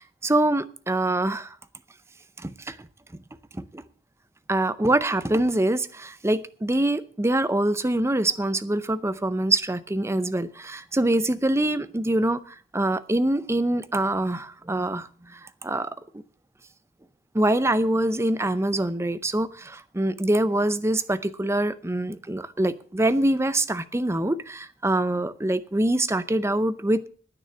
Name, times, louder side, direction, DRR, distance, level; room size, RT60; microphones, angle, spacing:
voice 1, 0.0-1.6 2.4-2.8 3.5-3.8 4.5-15.9 17.3-27.1, right 1 dB, 15° right, 13 dB, 0.6 m, -24 dB
10.0 x 9.3 x 6.7 m, 0.44 s
head